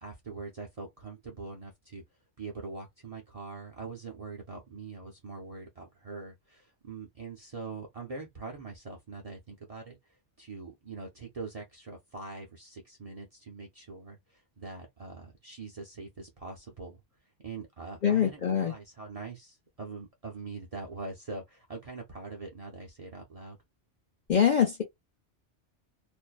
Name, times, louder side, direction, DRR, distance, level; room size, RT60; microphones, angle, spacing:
voice 1, 0.0-2.0 2.4-10.0 10.4-17.0 17.4-23.6, right 4 dB, 40° right, 0.6 m, -43 dB
voice 2, 18.0-18.7 24.3-24.8, left 8 dB, 55° left, 0.6 m, -24 dB
2.6 x 2.1 x 2.3 m
omnidirectional pair, 1.2 m